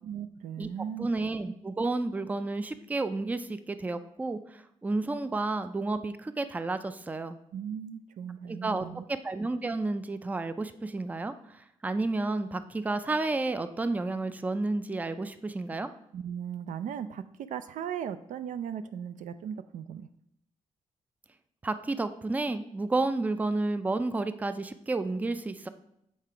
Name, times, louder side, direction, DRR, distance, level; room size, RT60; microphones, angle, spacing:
voice 1, 0.0-1.1 7.5-9.1 16.1-20.1, right 8 dB, 85° right, 12 dB, 0.4 m, -37 dB
voice 2, 1.0-7.4 8.5-11.3 11.8-15.9 21.6-25.7, right 2 dB, 10° right, 11 dB, 0.3 m, -31 dB
7.4 x 3.3 x 4.8 m, 0.76 s
cardioid pair, 120°, 13 cm